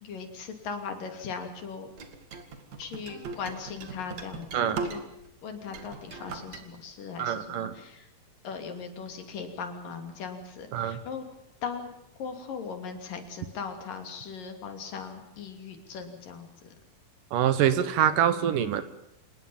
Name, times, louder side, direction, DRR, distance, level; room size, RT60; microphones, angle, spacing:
voice 1, 0.0-1.9 2.8-5.1 5.4-8.1 8.4-11.2 11.6-11.9 12.2-16.7, left 5 dB, 65° left, 6 dB, 4.4 m, -39 dB
sound 1, 2.0-5.3 5.6-6.6, right 4 dB, 55° right, 3.3 m, -39 dB
voice 2, 7.2-7.7 10.7-11.0 17.3-18.8, right 10 dB, 70° right, 13 dB, 2.6 m, -25 dB
27.0 x 20.0 x 7.2 m, 0.79 s
omnidirectional pair, 4.2 m